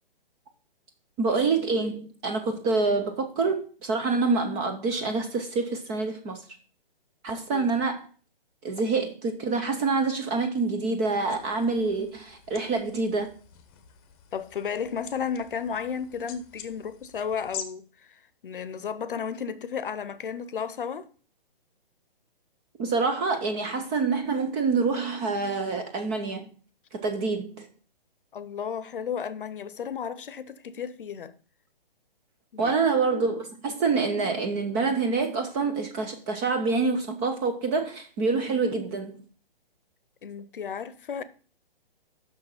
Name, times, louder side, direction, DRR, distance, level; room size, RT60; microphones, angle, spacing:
voice 1, 1.2-6.4 7.2-8.0 8.6-13.3 22.8-26.5 26.9-27.7 32.6-39.2, right 4 dB, 10° right, 0.4 m, -26 dB
sound 1, 11.3-17.6, left 9 dB, 25° left, 0.8 m, -46 dB
voice 2, 14.3-17.9 18.4-21.1 28.3-31.3 32.5-32.7 40.2-41.2, left 7 dB, 65° left, 0.8 m, -33 dB
6.2 x 6.1 x 5.6 m
figure-of-eight pair, 130°, 29 cm